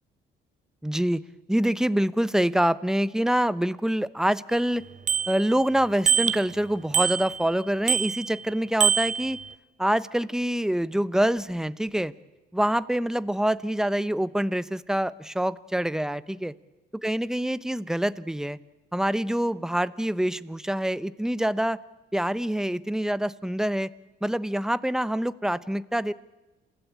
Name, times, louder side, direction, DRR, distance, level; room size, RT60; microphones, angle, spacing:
voice 1, 0.8-1.2 1.5-4.8 5.3-9.4 9.8-12.1 12.5-16.5 17.0-18.6 18.9-21.8 22.1-23.9 24.2-26.1, right 1 dB, 5° right, 16 dB, 0.9 m, -26 dB
Bicycle bell, 4.5-4.6 5.1-5.7 6.1-6.5 6.9-7.5 7.9-8.4 8.8-9.5, right 7 dB, 40° right, 0.7 m, -25 dB
28.5 x 16.5 x 8.7 m, 1.1 s
cardioid pair, 90°, 20 cm